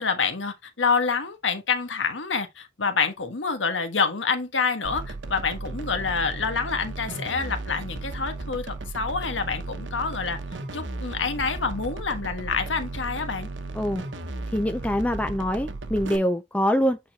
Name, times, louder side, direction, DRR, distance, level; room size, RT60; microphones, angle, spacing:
voice 1, 0.0-10.4 10.7-13.5, left 5 dB, 90° left, 1.3 m, -27 dB
sound 1, 4.8-16.2, right 2 dB, 75° right, 1.0 m, -35 dB
voice 2, 14.5-17.0, equal, 10° left, 0.5 m, -24 dB
8.7 x 4.0 x 2.8 m
head